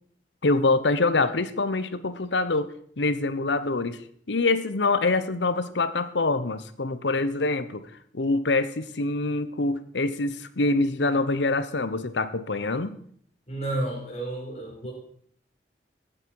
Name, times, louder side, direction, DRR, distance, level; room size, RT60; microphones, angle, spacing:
voice 1, 0.4-4.0 4.3-7.8 8.1-13.0, left 3 dB, 85° left, 13 dB, 0.9 m, -25 dB
voice 2, 13.5-14.9, right 2 dB, 40° left, -2 dB, 4.9 m, -31 dB
15.0 x 8.8 x 4.7 m, 0.62 s
head